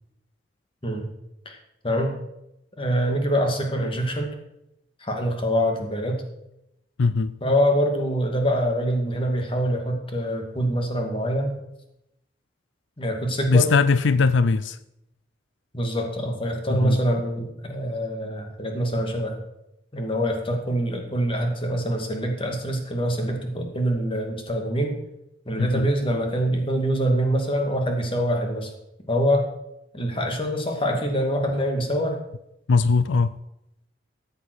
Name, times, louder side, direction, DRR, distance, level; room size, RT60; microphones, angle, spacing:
voice 1, 1.8-2.2 2.8-4.3 5.0-6.2 7.4-11.5 13.0-13.7 15.7-19.4 19.9-25.0 25.5-28.7 29.1-29.5 29.9-32.2, equal, 30° left, 2.4 m, -25 dB
voice 2, 7.0-7.3 13.5-14.8 16.8-17.0 25.6-25.9 32.7-33.3, left 4 dB, 90° left, 0.5 m, -20 dB
14.0 x 8.1 x 6.2 m
head